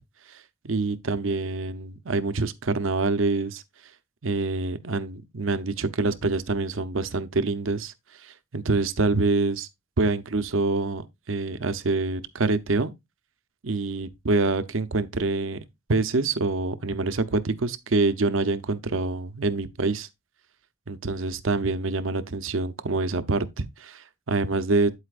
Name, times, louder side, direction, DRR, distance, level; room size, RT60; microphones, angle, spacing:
voice 1, 0.6-3.6 4.2-7.9 8.2-9.7 10.0-12.9 13.6-15.6 15.9-20.1 20.9-24.9, right 3 dB, 75° right, 0.8 m, -26 dB
8.6 x 8.1 x 2.5 m
head